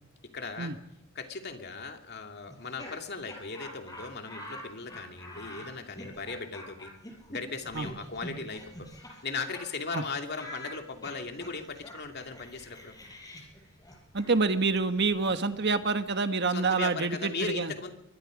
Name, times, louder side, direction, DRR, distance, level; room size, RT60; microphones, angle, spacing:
voice 1, 0.3-0.7 1.1-6.9 7.3-8.9 9.2-13.0 16.5-17.9, left 4 dB, 50° left, 4 dB, 2.6 m, -38 dB
Laughter, 2.5-9.6 9.9-10.0 10.3-16.1, left 1 dB, 20° left, 5.3 m, -46 dB
voice 2, 14.1-17.7, right 4 dB, 55° right, 9 dB, 1.4 m, -27 dB
23.5 x 22.5 x 5.2 m, 0.78 s
head